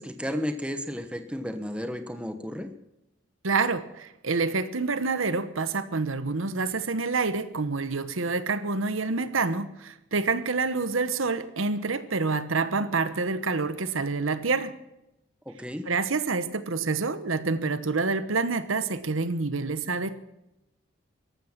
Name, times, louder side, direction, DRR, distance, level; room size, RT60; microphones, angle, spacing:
voice 1, 0.0-2.7 15.5-15.9, equal, 5° right, 8 dB, 1.0 m, -33 dB
voice 2, 3.4-14.8 15.9-20.2, right 4 dB, 75° right, 14 dB, 1.1 m, -27 dB
14.5 x 12.5 x 7.3 m, 0.91 s
head